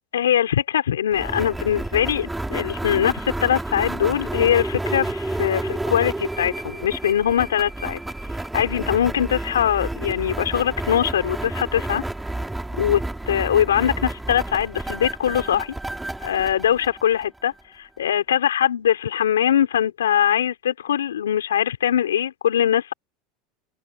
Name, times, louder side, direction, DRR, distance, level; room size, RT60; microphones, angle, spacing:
voice 1, 0.1-8.0 8.5-12.0 12.8-13.0 13.3-15.7 16.2-22.9, left 10 dB, 90° left, 4.2 m, -22 dB
sound 1, 1.1-17.6, right 2 dB, 10° right, 3.8 m, -30 dB
open air
hypercardioid pair, 90°, 0 cm